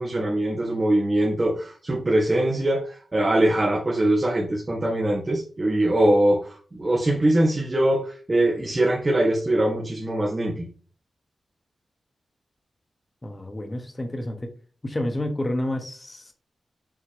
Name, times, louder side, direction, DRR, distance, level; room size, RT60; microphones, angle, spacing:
voice 1, 0.0-10.7, right 1 dB, 30° right, -2 dB, 1.8 m, -22 dB
voice 2, 13.2-14.5 14.8-16.3, left 1 dB, 20° left, 5 dB, 1.4 m, -29 dB
7.4 x 4.1 x 3.6 m, 0.39 s
wide cardioid pair, 90°, 0 cm